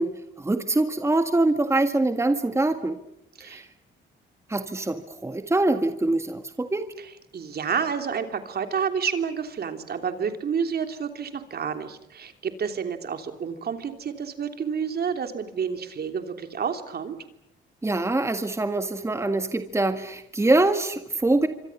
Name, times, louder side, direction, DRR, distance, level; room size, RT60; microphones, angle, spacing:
voice 1, 0.0-3.0 3.4-3.7 4.5-6.9 17.8-21.5, right 2 dB, 15° right, 8 dB, 1.8 m, -24 dB
voice 2, 7.3-17.2, right 6 dB, 50° right, 7 dB, 3.2 m, -29 dB
27.0 x 25.0 x 7.3 m, 0.80 s
cardioid pair, 90°, 20 cm